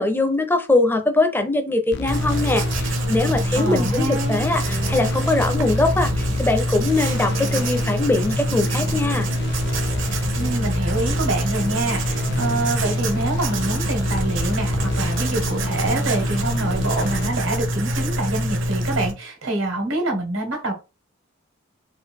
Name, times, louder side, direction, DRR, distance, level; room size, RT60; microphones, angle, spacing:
voice 1, 0.0-9.3, left 2 dB, 10° left, 0.6 m, -22 dB
sound 1, 1.9-17.3, left 2 dB, 60° left, 0.6 m, -32 dB
Writing, 2.1-19.1, equal, 70° right, 0.8 m, -24 dB
voice 2, 3.5-4.4 10.3-20.7, right 2 dB, 85° right, 1.4 m, -26 dB
3.7 x 2.5 x 3.5 m
head